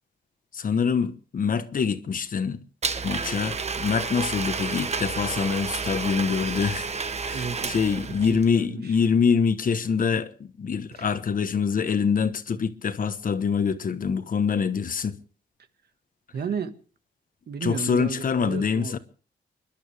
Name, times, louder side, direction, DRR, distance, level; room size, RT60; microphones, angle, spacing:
voice 1, 0.5-2.6 3.0-6.9 7.2-15.2 17.6-19.0, left 6 dB, 50° left, 1.2 m, -25 dB
Domestic sounds home sounds, 2.8-8.5, right 5 dB, 35° right, 1.0 m, -31 dB
voice 2, 7.3-7.9 8.3-9.0 10.9-11.1 16.3-16.7 17.5-19.0, right 6 dB, 60° right, 1.7 m, -33 dB
29.0 x 12.0 x 3.5 m
cardioid pair, 110°, 18 cm